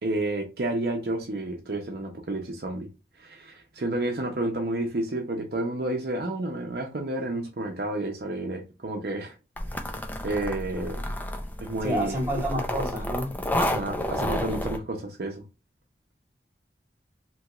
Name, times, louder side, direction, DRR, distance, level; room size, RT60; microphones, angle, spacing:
voice 1, 0.0-2.9 3.2-9.3 10.2-11.0 11.6-12.1 13.6-15.4, right 2 dB, 60° right, 0.6 m, -30 dB
sound 1, 9.6-14.8, left 1 dB, 10° left, 0.4 m, -31 dB
voice 2, 11.8-13.3, right 1 dB, 15° right, 1.5 m, -29 dB
2.9 x 2.9 x 2.3 m
head